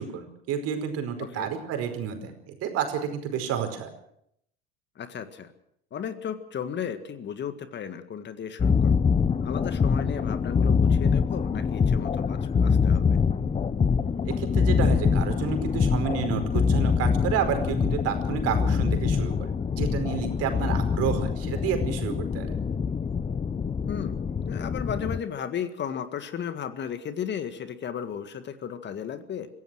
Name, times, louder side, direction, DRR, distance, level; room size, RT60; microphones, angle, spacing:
voice 1, 0.0-3.9 14.2-19.5 19.8-22.6, right 8 dB, 50° right, 7 dB, 4.9 m, -30 dB
voice 2, 5.0-5.5 5.9-8.9 9.4-13.2 20.5-20.8 23.9-29.5, left 8 dB, 35° left, 10 dB, 1.9 m, -35 dB
sound 1, 8.6-25.2, left 6 dB, 20° left, 1.0 m, -24 dB
25.5 x 16.0 x 6.4 m, 0.72 s
hypercardioid pair, 85°, 31 cm